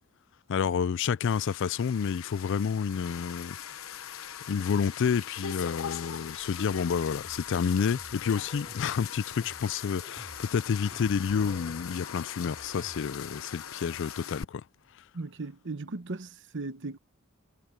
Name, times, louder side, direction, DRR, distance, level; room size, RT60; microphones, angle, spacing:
voice 1, 0.5-3.6 4.5-14.6, left 6 dB, 65° left, 0.4 m, -29 dB
sound 1, 1.2-14.4, left 8 dB, 85° left, 0.8 m, -41 dB
sound 2, 7.2-7.6 7.9-13.1, left 1 dB, 35° left, 3.2 m, -50 dB
voice 2, 15.1-17.0, right 3 dB, 65° right, 0.9 m, -37 dB
head